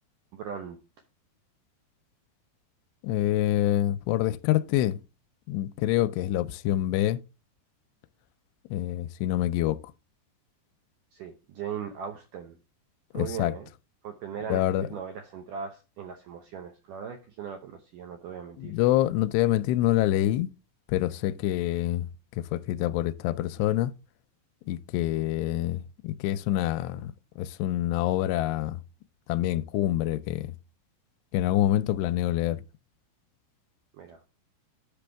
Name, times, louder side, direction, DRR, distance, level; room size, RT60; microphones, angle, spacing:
voice 1, 0.3-0.8 11.1-12.6 13.1-13.7 14.0-18.7 33.9-34.2, right 7 dB, 80° right, 1.9 m, -39 dB
voice 2, 3.0-5.0 5.5-7.2 8.7-9.8 13.1-13.5 14.5-14.9 18.6-20.5 20.9-22.1 22.5-23.9 24.7-27.1 27.4-28.8 29.3-30.5 31.3-32.6, left 13 dB, 85° left, 2.7 m, -26 dB
10.5 x 6.1 x 3.4 m
omnidirectional pair, 4.9 m